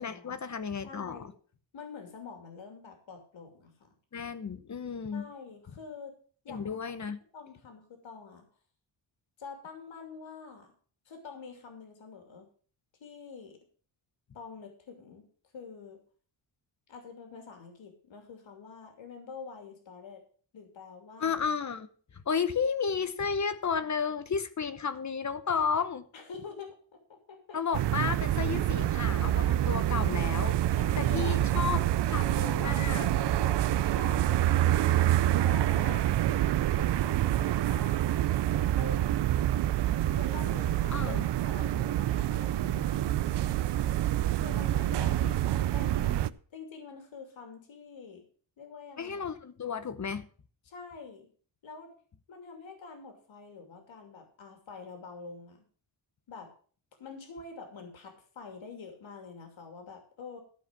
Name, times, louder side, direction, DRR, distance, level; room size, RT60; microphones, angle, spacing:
voice 1, 0.0-1.3 4.1-5.3 6.5-7.2 21.2-26.0 27.5-33.1 40.9-41.2 44.9-45.6 49.0-50.3, left 6 dB, 35° left, 0.9 m, -33 dB
voice 2, 0.8-1.3 1.7-3.9 5.1-6.2 6.4-6.9 7.3-8.4 9.4-10.7 11.1-12.5 13.0-13.6 14.3-15.2 15.5-16.0 16.9-20.2 20.5-21.4 26.1-27.6 30.8-31.4 32.1-34.9 35.2-36.2 36.8-38.1 38.5-39.7 40.1-41.2 41.4-43.7 44.3-45.2 45.5-48.2 48.6-49.2 50.7-51.3 51.6-51.9 52.3-55.6 56.3-56.5 57.0-60.4, left 5 dB, 70° left, 2.8 m, -46 dB
sound 1, 27.7-46.3, right 13 dB, 60° right, 0.6 m, -27 dB
13.5 x 4.9 x 7.3 m
wide cardioid pair, 125°, 48 cm